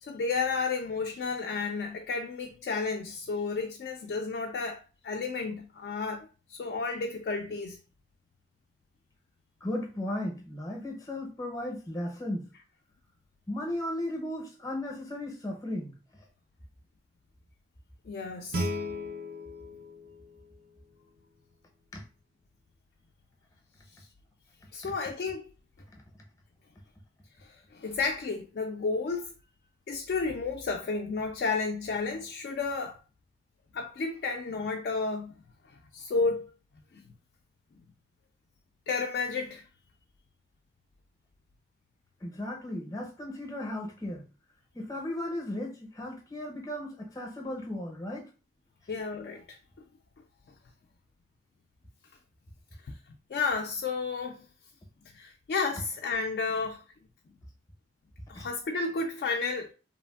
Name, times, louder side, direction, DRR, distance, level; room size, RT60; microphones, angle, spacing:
voice 1, 0.0-7.8 18.1-18.7 23.9-24.0 24.7-25.5 27.4-29.3 29.9-33.0 33.7-35.3 35.9-36.5 36.9-37.1 38.9-39.6 48.9-49.6 52.8-53.0 53.3-54.5 55.1-56.8 58.3-59.7, left 4 dB, 60° left, 0.3 m, -32 dB
voice 2, 9.6-12.5 13.5-16.2 21.9-22.0 25.9-26.0 42.2-44.2 44.7-48.3 58.3-58.5, left 1 dB, 20° left, 0.6 m, -36 dB
Guitar, 18.5-21.3, left 1 dB, 50° right, 0.4 m, -37 dB
3.0 x 2.5 x 2.2 m
head